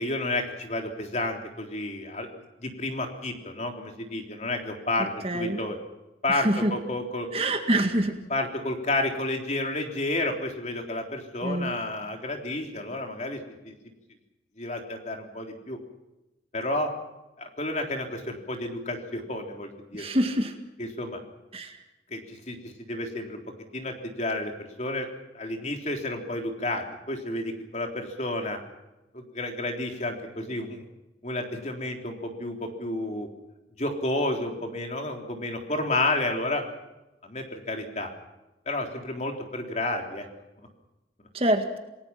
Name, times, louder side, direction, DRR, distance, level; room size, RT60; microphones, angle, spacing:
voice 1, 0.0-2.3 2.6-5.8 6.2-7.3 8.3-13.7 14.6-15.8 16.5-16.9 17.4-20.1 20.8-21.2 22.1-22.6 22.9-23.4 23.7-25.1 25.3-28.6 29.1-30.8 31.2-33.3 33.8-36.6 37.2-38.1 38.7-40.3, left 2 dB, 40° left, 3 dB, 3.6 m, -31 dB
voice 2, 5.2-5.6 6.3-6.7 7.3-8.2 11.4-11.7 19.9-20.5 21.5-21.8 41.3-41.8, right 1 dB, 35° right, 6 dB, 2.0 m, -25 dB
28.0 x 19.0 x 6.0 m, 1.0 s
head